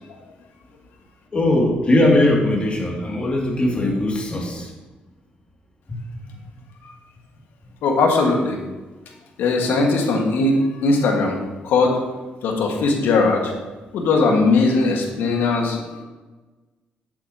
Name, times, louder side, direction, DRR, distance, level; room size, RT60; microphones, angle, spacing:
voice 1, 1.3-4.7 5.9-6.4, left 1 dB, 35° left, -1 dB, 2.4 m, -20 dB
voice 2, 7.8-8.6 9.4-11.4 11.6-12.0 12.4-13.5 13.9-16.0, left 3 dB, 85° left, 1 dB, 1.6 m, -19 dB
11.0 x 8.1 x 2.9 m, 1.2 s
cardioid pair, 90°, 3 cm